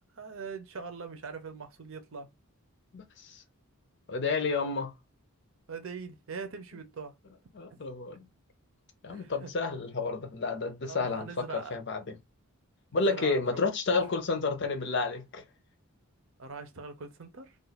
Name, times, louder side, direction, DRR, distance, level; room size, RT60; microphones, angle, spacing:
voice 1, 0.1-2.3 5.7-7.1 7.7-7.8 9.1-9.5 10.9-11.8 12.9-13.6 13.9-14.0 16.4-17.6, right 5 dB, 60° right, 0.7 m, -42 dB
voice 2, 2.9-3.4 4.1-4.9 7.5-8.3 9.0-12.2 12.9-15.4, left 4 dB, 50° left, 0.6 m, -30 dB
2.4 x 2.4 x 4.1 m
head